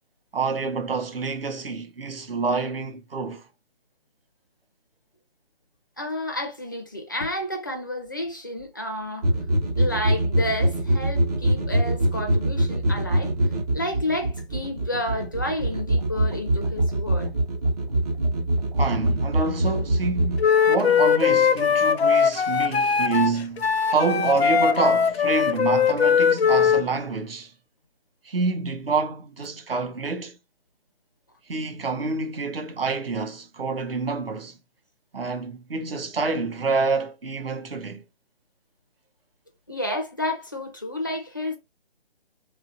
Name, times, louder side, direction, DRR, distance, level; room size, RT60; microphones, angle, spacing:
voice 1, 0.3-3.4 18.7-27.5 28.2-30.4 31.5-34.6 35.1-38.0, right 4 dB, 65° right, 0.9 m, -27 dB
voice 2, 6.0-9.3 9.8-13.3 13.7-17.3 39.7-41.6, left 1 dB, 20° left, 0.4 m, -30 dB
sound 1, 9.2-20.5, right 1 dB, 40° right, 1.0 m, -24 dB
Wind instrument woodwind instrument, 20.4-26.8, left 7 dB, 75° left, 0.5 m, -20 dB
3.0 x 2.5 x 2.6 m
figure-of-eight pair, 150°, 31 cm